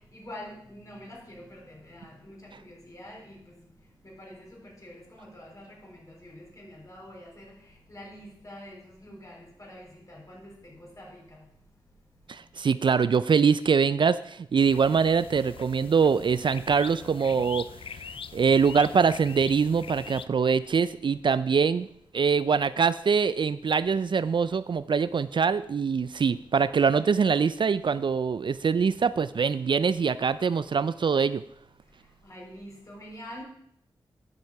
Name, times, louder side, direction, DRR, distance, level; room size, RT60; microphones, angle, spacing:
voice 1, 0.1-3.4 4.0-7.5 7.9-11.4 32.2-33.4, left 1 dB, 35° left, -2 dB, 4.3 m, -46 dB
voice 2, 12.3-18.0 18.3-21.9 22.1-31.4, right 6 dB, 55° right, 15 dB, 0.4 m, -24 dB
sound 1, 14.6-20.3, left 7 dB, 70° left, 0.4 m, -43 dB
10.0 x 6.3 x 5.9 m, 0.72 s
cardioid pair, 50°, 10 cm